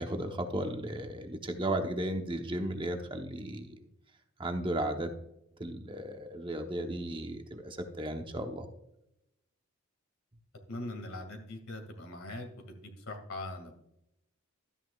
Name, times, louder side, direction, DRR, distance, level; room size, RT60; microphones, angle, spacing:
voice 1, 0.0-3.9 4.4-5.1 5.6-8.7, right 1 dB, 20° right, 5 dB, 0.9 m, -35 dB
voice 2, 10.7-13.7, left 1 dB, 65° left, 4 dB, 2.2 m, -41 dB
13.0 x 9.4 x 2.4 m, 0.80 s
head